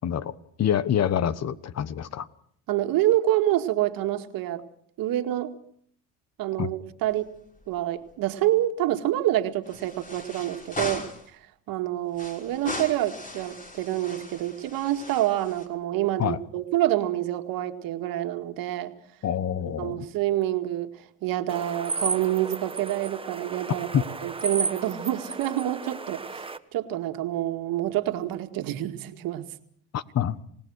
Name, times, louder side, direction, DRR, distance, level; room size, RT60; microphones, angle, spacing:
voice 1, 0.0-2.3 6.6-6.7 16.2-16.4 19.2-20.1 23.9-24.0 29.9-30.4, left 9 dB, 45° left, 16 dB, 1.3 m, -26 dB
voice 2, 2.7-4.6 5.0-5.5 6.4-7.3 7.7-11.4 11.7-18.9 19.8-20.9 21.2-29.5, right 14 dB, 70° right, 7 dB, 2.1 m, -27 dB
sound 1, 7.1-7.8 8.1-8.2 9.6-11.3 12.1-15.7, left 2 dB, 20° left, 5.4 m, -38 dB
sound 2, 21.5-26.6, right 3 dB, 15° right, 1.3 m, -33 dB
28.0 x 18.5 x 6.4 m, 0.62 s
supercardioid pair, 95°, 36 cm